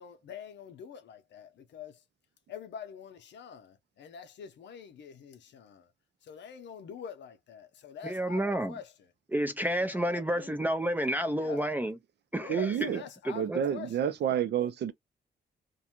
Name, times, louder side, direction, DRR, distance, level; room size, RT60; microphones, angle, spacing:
voice 1, 0.0-2.0 2.5-5.9 6.2-8.9 9.8-10.6 11.3-11.7 12.4-14.0 14.3-14.4, left 7 dB, 80° left, 0.6 m, -45 dB
voice 2, 8.0-8.8 9.3-12.0 12.3-12.9 13.2-13.6, right 1 dB, 10° right, 0.3 m, -30 dB
voice 3, 12.5-13.0 13.3-14.9, right 9 dB, 70° right, 0.5 m, -29 dB
2.5 x 2.2 x 2.8 m
wide cardioid pair, 130°, 18 cm